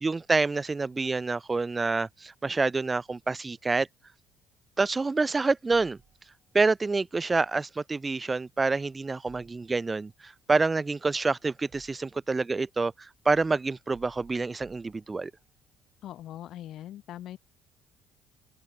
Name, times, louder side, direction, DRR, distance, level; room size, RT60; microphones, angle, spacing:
voice 1, 0.0-3.9 4.8-6.0 6.5-12.9 13.3-15.3, right 3 dB, 25° right, 0.6 m, -27 dB
sound 1, 5.7-6.6 9.3-10.1 11.0-12.4 13.3-15.5, right 9 dB, 55° right, 3.3 m, -59 dB
voice 2, 16.0-17.4, left 12 dB, 65° left, 0.6 m, -41 dB
open air
supercardioid pair, 80°, 0 cm